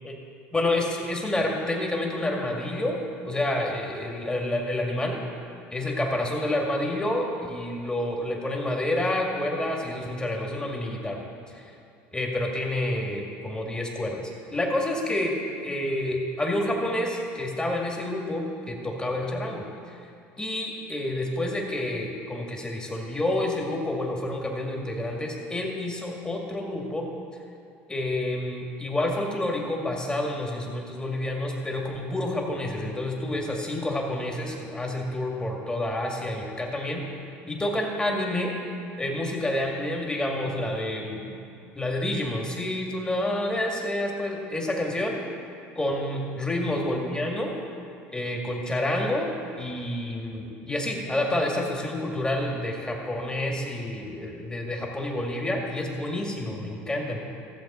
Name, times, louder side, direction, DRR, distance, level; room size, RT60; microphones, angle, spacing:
voice 1, 0.5-3.0 3.2-5.2 5.7-11.2 11.5-11.7 12.1-15.4 15.6-19.6 20.4-27.1 27.9-37.0 37.5-38.5 39.0-41.3 41.8-45.2 45.8-47.5 48.1-49.3 49.6-57.2, left 1 dB, 15° left, -1 dB, 2.1 m, -29 dB
14.5 x 7.4 x 4.3 m, 2.5 s
supercardioid pair, 90°, 6 cm